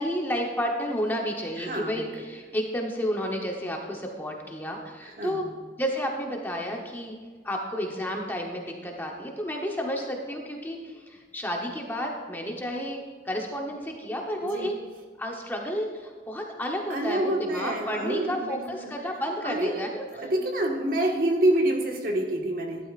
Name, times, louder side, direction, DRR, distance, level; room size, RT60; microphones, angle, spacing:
voice 1, 0.0-5.4 5.8-7.1 7.4-14.7 15.2-20.0, equal, 10° left, 0 dB, 0.9 m, -31 dB
voice 2, 1.6-2.1 5.0-5.5 14.4-14.7 16.9-18.9 19.4-19.8 20.1-22.9, right 1 dB, 50° right, 1 dB, 1.5 m, -27 dB
12.5 x 11.5 x 2.5 m, 1.5 s
head